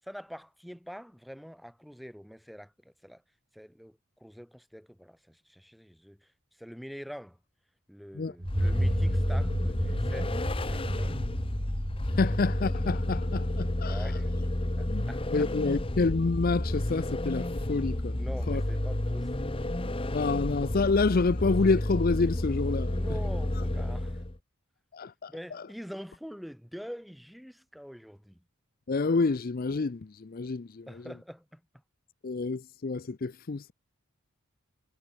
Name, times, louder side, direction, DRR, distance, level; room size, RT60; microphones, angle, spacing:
voice 1, 0.0-3.2 3.5-7.4 7.9-11.2 13.8-14.3 14.8-15.5 18.2-19.5 22.9-24.3 25.3-28.4 30.9-31.6, equal, ahead, 7.1 m, -45 dB
Vehicle, 8.4-24.4, left 1 dB, 25° left, 1.1 m, -31 dB
sound 1, 8.4-14.9, right 1 dB, 20° right, 1.6 m, -33 dB
voice 2, 12.2-14.1 14.9-15.1 15.3-18.2 18.5-18.6 20.1-23.0 24.9-25.6 28.9-30.9 32.2-33.7, left 3 dB, 45° left, 0.5 m, -28 dB
head